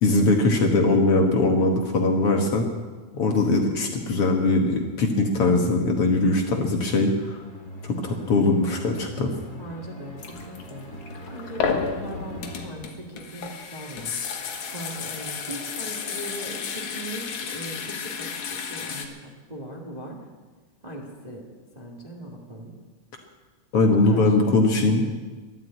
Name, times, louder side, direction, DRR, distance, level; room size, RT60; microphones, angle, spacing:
voice 1, 0.0-2.7 3.1-7.4 7.8-9.3 23.7-25.0, left 2 dB, 55° left, 3 dB, 2.0 m, -21 dB
sound 1, 7.1-12.6, equal, 25° left, 2.5 m, -42 dB
voice 2, 9.6-10.9 11.3-14.2 14.7-20.2 20.8-21.4 21.7-22.7 23.8-24.4 25.0-25.1, right 1 dB, 15° right, 0 dB, 1.5 m, -39 dB
sound 2, 10.2-19.1, left 6 dB, 75° left, 2.8 m, -32 dB
12.5 x 12.0 x 8.8 m, 1.3 s
omnidirectional pair, 3.4 m